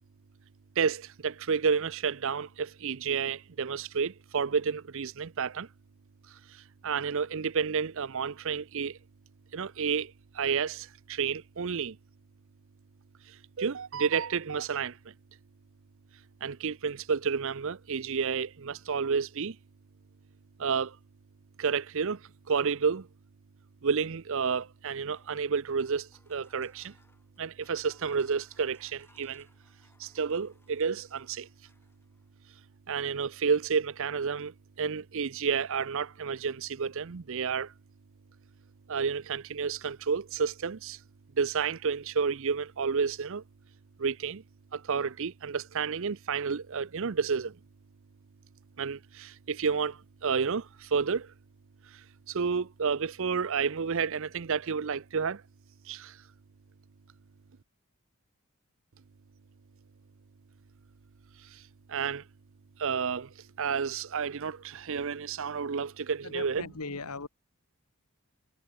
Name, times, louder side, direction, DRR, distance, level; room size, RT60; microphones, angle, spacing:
voice 1, 0.8-5.7 6.5-9.0 9.5-12.0 13.3-15.0 16.4-19.6 20.6-21.0 21.6-22.2 22.5-23.1 23.8-26.9 27.4-29.5 30.0-31.5 32.9-37.7 38.9-41.0 41.4-43.4 44.0-44.4 44.7-47.6 48.8-51.3 51.9-55.4 55.9-56.2 61.5-61.6 61.9-62.2 62.8-66.6, right 6 dB, 60° right, 0.6 m, -30 dB
sound 1, 24.7-32.4, left 2 dB, 10° left, 5.4 m, -66 dB
voice 2, 66.2-67.3, left 4 dB, 90° left, 1.7 m, -38 dB
head